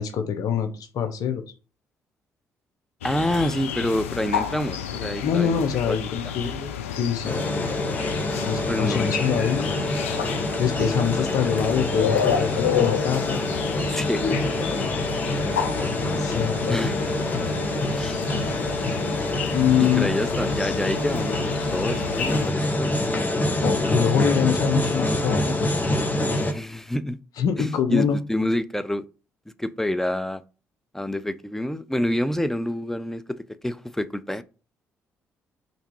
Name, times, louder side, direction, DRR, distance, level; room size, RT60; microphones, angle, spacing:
voice 1, 0.0-1.4 5.2-6.5 6.9-7.4 8.4-9.8 10.6-13.4 16.1-16.9 19.5-20.1 23.6-25.8 27.4-28.2, left 8 dB, 60° left, 0.7 m, -24 dB
sound 1, 3.0-22.5, left 9 dB, 85° left, 0.3 m, -30 dB
voice 2, 3.0-6.0 6.4-6.7 8.7-9.8 13.9-14.9 15.4-15.6 16.7-17.1 17.9-18.2 19.8-23.2 26.2-27.2 27.6-29.0 29.6-30.4 30.9-34.4, left 1 dB, 5° left, 0.5 m, -28 dB
sound 2, 7.2-26.5, left 1 dB, 25° left, 1.0 m, -26 dB
3.4 x 2.7 x 4.6 m
hypercardioid pair, 45°, 7 cm